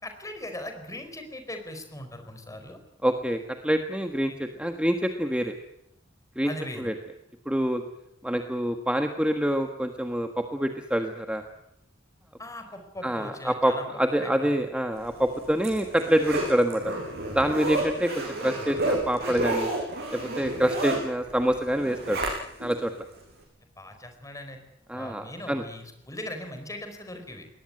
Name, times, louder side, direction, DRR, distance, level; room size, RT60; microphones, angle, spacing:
voice 1, 0.0-2.8 6.4-6.9 12.4-13.9 14.2-14.5 23.8-24.6 24.9-27.4, left 1 dB, 15° left, 7 dB, 4.6 m, -39 dB
voice 2, 3.0-3.4 3.6-5.5 6.3-6.5 6.8-6.9 7.4-7.8 8.2-11.4 13.0-16.9 17.3-19.7 20.1-22.2 22.6-22.9 24.9-25.6, equal, 5° right, 6 dB, 1.4 m, -26 dB
Zipper (clothing), 15.1-22.7 23.2-23.3, right 2 dB, 55° right, 8.0 m, -31 dB
21.5 x 18.5 x 9.6 m, 0.81 s
head